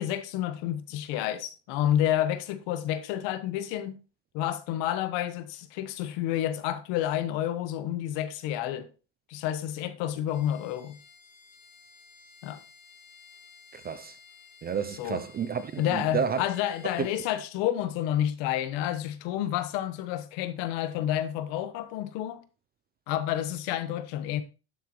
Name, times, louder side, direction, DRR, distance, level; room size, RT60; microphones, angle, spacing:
voice 1, 0.0-4.0 4.3-8.9 9.3-11.0 12.4-12.6 15.0-15.2 15.8-22.4 23.1-24.4, left 11 dB, 80° left, 1.3 m, -29 dB
Bowed string instrument, 10.2-17.4, left 5 dB, 50° left, 3.0 m, -54 dB
voice 2, 13.7-14.1 14.6-16.4 17.0-17.1, right 7 dB, 25° right, 0.3 m, -31 dB
11.5 x 6.9 x 3.0 m
cardioid pair, 145°, 44 cm